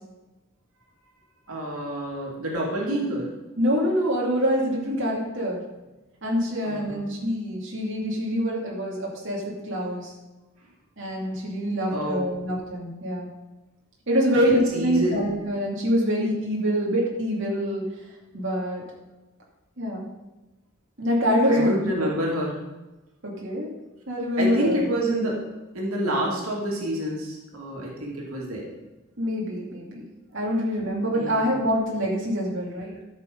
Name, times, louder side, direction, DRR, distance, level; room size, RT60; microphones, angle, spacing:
voice 1, 1.5-3.3 6.6-7.0 11.8-12.3 14.3-15.3 21.5-22.6 24.4-25.4 25.7-28.7 31.1-31.5, right 1 dB, 90° right, -2 dB, 2.6 m, -28 dB
voice 2, 3.6-5.6 6.2-10.1 11.0-13.3 14.1-17.9 18.3-18.8 19.8-20.1 21.0-22.1 23.2-23.7 24.1-24.9 29.2-30.1 30.3-33.0, equal, 60° right, -4 dB, 2.5 m, -25 dB
13.0 x 6.3 x 5.4 m, 1.1 s
head